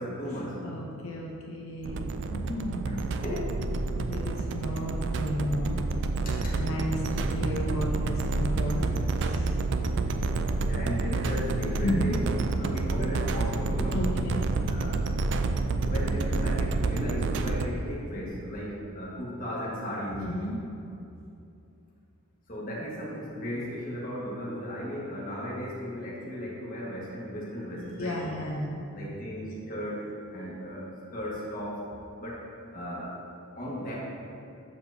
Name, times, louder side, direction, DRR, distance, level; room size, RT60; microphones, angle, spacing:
voice 1, 0.0-0.6 3.2-3.4 6.2-6.6 10.7-12.2 12.6-14.0 14.7-15.0 15.8-20.3 22.5-28.2 28.9-31.9 32.2-32.4 32.7-33.2 33.5-34.0, equal, 40° left, -6 dB, 1.5 m, -36 dB
voice 2, 0.6-3.2 4.0-5.8 6.5-10.1 11.8-12.2 13.9-14.4 20.2-20.6 28.0-28.7, left 1 dB, 75° left, -2 dB, 0.7 m, -33 dB
sound 1, 1.8-17.7, right 3 dB, 55° right, 0.3 m, -29 dB
12.5 x 4.5 x 2.7 m, 2.7 s
head